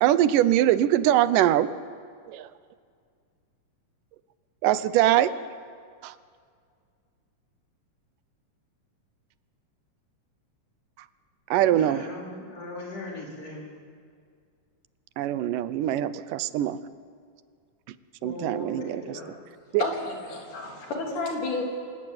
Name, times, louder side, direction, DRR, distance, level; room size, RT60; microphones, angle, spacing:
voice 1, 0.0-1.7 2.3-2.5 4.6-5.3 6.0-6.1 11.5-12.0 15.2-16.8 18.2-19.0 19.7-19.9, right 12 dB, 85° right, 14 dB, 2.4 m, -22 dB
voice 2, 11.7-13.8 18.2-19.4, left 2 dB, 50° left, -3 dB, 5.5 m, -39 dB
voice 3, 19.8-21.6, left 3 dB, 75° left, 0 dB, 5.0 m, -31 dB
27.5 x 16.5 x 8.9 m, 2.2 s
omnidirectional pair, 3.7 m